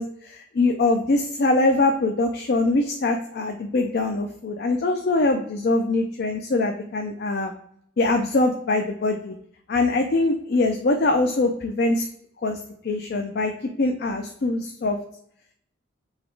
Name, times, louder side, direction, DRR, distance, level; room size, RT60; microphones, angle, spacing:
voice 1, 0.0-7.5 8.0-9.3 9.7-12.1 12.4-12.6 12.8-13.5 13.8-15.0, left 2 dB, 50° left, 4 dB, 0.4 m, -23 dB
4.0 x 2.9 x 4.5 m, 0.69 s
head